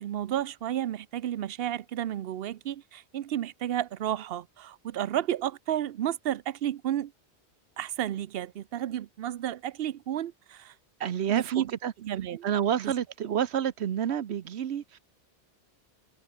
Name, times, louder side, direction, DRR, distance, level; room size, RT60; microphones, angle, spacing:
voice 1, 0.0-7.1 7.8-10.7 11.3-11.7 12.0-12.4 12.8-12.9, right 11 dB, 65° right, 0.8 m, -32 dB
voice 2, 11.0-11.9 12.4-15.0, right 9 dB, 85° right, 1.1 m, -29 dB
omnidirectional pair, 1.1 m